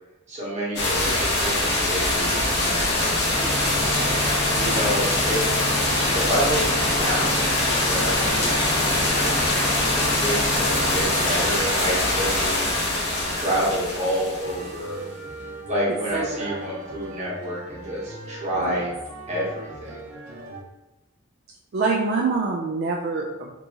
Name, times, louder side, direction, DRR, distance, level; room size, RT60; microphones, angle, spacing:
voice 1, 0.3-3.0 4.5-5.5 6.1-12.7 13.3-15.1 15.7-18.9 19.3-20.0, equal, 30° right, -6 dB, 1.1 m, -29 dB
sound 1, 0.8-15.0, left 1 dB, 50° left, 0.9 m, -23 dB
sound 2, 2.7-11.6, left 1 dB, 25° left, 0.5 m, -30 dB
sound 3, 14.4-20.6, right 1 dB, 85° right, 0.7 m, -39 dB
voice 2, 15.9-16.6 18.6-18.8 21.7-23.5, right 4 dB, 50° right, -1 dB, 0.3 m, -26 dB
3.5 x 2.7 x 2.9 m, 0.97 s
head